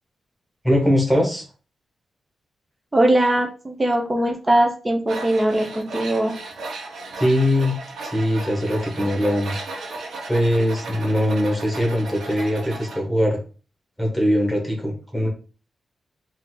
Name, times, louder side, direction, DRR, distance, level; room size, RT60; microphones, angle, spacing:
voice 1, 0.6-1.4 7.2-9.6 10.3-13.4 14.0-15.3, equal, ahead, 1 dB, 1.4 m, -21 dB
voice 2, 2.9-6.3, right 1 dB, 20° right, 2 dB, 0.7 m, -20 dB
Tools, 5.1-13.0, right 3 dB, 85° right, 0.9 m, -35 dB
4.0 x 2.7 x 3.9 m, 0.36 s
wide cardioid pair, 125°, 0 cm